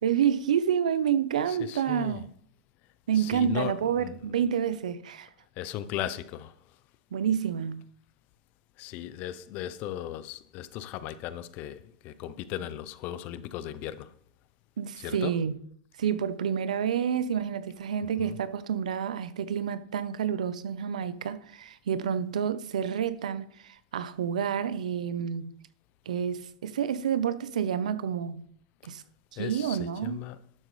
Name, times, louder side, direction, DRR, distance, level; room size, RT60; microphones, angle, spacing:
voice 1, 0.0-2.3 3.1-5.3 7.1-7.8 14.8-15.5 16.0-25.5 26.1-28.4 28.8-29.0 29.3-30.2, right 8 dB, 85° right, 0.8 m, -29 dB
voice 2, 1.5-2.2 3.1-4.1 5.6-6.6 8.8-14.1 15.0-15.4 18.2-18.4 29.4-30.4, left 12 dB, 50° left, 0.6 m, -37 dB
12.0 x 7.4 x 3.3 m
hypercardioid pair, 115°, 4 cm